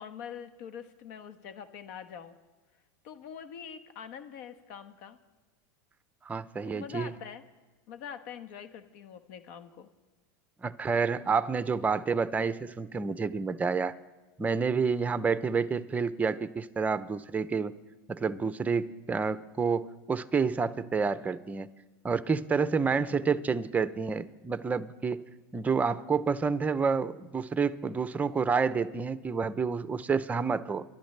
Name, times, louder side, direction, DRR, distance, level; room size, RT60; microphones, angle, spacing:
voice 1, 0.0-2.4 3.0-5.2 6.6-7.4 7.9-9.9 15.6-15.7 22.8-23.1, left 8 dB, 60° left, 9 dB, 1.2 m, -44 dB
voice 2, 6.3-7.1 10.6-13.9 14.4-17.7 18.1-21.7 22.0-25.3 25.5-30.8, right 5 dB, 15° right, 14 dB, 0.6 m, -29 dB
29.0 x 12.0 x 3.3 m, 1.2 s
supercardioid pair, 130°, 10 cm